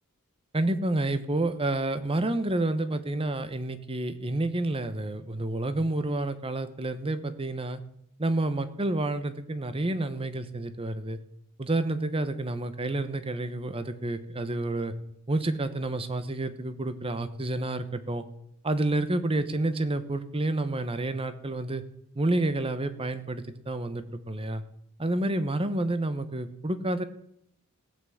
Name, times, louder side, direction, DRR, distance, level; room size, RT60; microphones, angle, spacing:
voice 1, 0.5-7.8 8.2-11.2 11.6-14.9 15.3-18.2 18.6-21.8 22.1-24.6 25.0-27.0, right 2 dB, 25° right, 11 dB, 1.0 m, -29 dB
16.0 x 6.0 x 7.9 m, 0.73 s
head